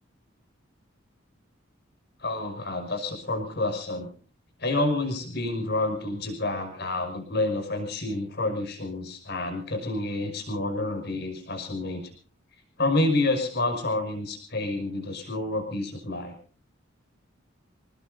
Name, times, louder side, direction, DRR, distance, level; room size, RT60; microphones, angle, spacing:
voice 1, 2.2-4.1 4.6-12.0 12.8-16.3, left 2 dB, 55° left, 5 dB, 5.9 m, -28 dB
28.0 x 19.0 x 2.7 m, 0.41 s
head